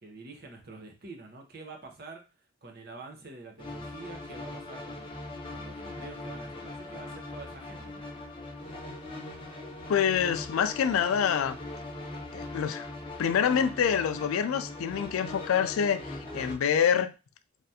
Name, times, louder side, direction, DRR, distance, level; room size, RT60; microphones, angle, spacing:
voice 1, 0.0-2.2 2.6-5.1 5.5-8.0, right 3 dB, 45° right, 0.7 m, -46 dB
sound 1, 3.6-16.5, left 2 dB, 25° left, 0.6 m, -41 dB
voice 2, 9.9-11.6 12.3-12.8 13.2-17.1, left 8 dB, 85° left, 0.3 m, -26 dB
3.3 x 2.4 x 2.7 m
head